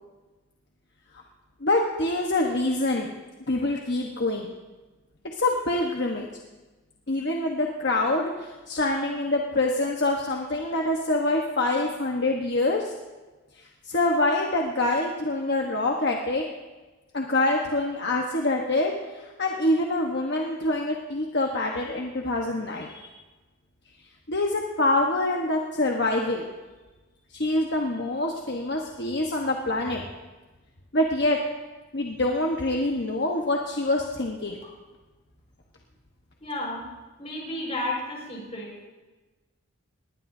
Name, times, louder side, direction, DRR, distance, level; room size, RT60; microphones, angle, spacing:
voice 1, 1.6-3.1 3.5-4.5 5.4-6.3 7.1-12.9 13.9-16.4 17.1-18.9 19.2-23.1 24.3-26.4 27.3-30.0 30.9-31.4 31.9-34.6, left 2 dB, 50° left, 0 dB, 1.2 m, -25 dB
voice 2, 36.4-36.8 37.2-38.7, left 1 dB, 30° left, -2 dB, 5.3 m, -32 dB
19.5 x 19.5 x 2.8 m, 1.2 s
head